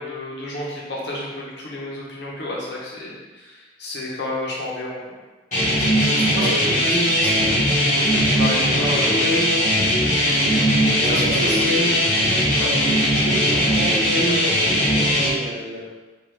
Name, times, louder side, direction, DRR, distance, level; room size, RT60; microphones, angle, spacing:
voice 1, 0.0-5.2 5.6-7.3 7.8-9.2 10.9-12.2 12.6-12.7, left 1 dB, 70° left, -4 dB, 1.0 m, -31 dB
sound 1, 5.5-15.3, equal, 40° left, 1.3 m, -19 dB
voice 2, 6.4-6.9 7.2-7.4 8.8-9.5 11.0-12.0 13.1-15.9, right 1 dB, 40° right, -4 dB, 0.7 m, -32 dB
4.6 x 2.6 x 3.3 m, 1.2 s
head